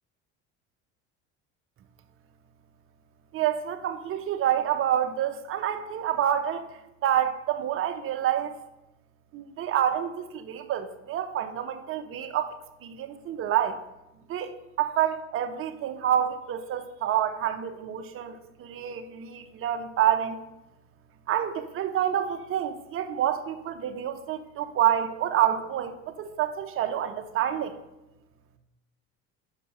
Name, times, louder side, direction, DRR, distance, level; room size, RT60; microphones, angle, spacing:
voice 1, 3.3-8.6 9.3-13.8 14.3-14.5 14.8-20.4 21.3-27.8, right 10 dB, 45° right, 8 dB, 0.7 m, -28 dB
5.7 x 4.9 x 5.5 m, 0.95 s
supercardioid pair, 100°, 31 cm